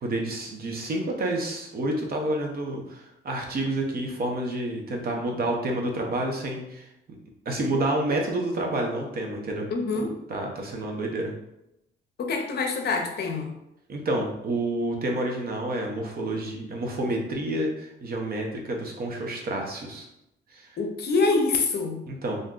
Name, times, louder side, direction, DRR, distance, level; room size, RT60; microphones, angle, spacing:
voice 1, 0.0-6.9 7.5-9.7 10.3-11.3 13.9-20.1 20.5-20.7 22.1-22.4, right 1 dB, 50° right, 1 dB, 0.7 m, -29 dB
voice 2, 9.7-10.2 12.2-13.5 20.8-22.0, left 3 dB, 55° left, 3 dB, 0.6 m, -25 dB
2.6 x 2.2 x 3.6 m, 0.85 s
cardioid pair, 90°, 20 cm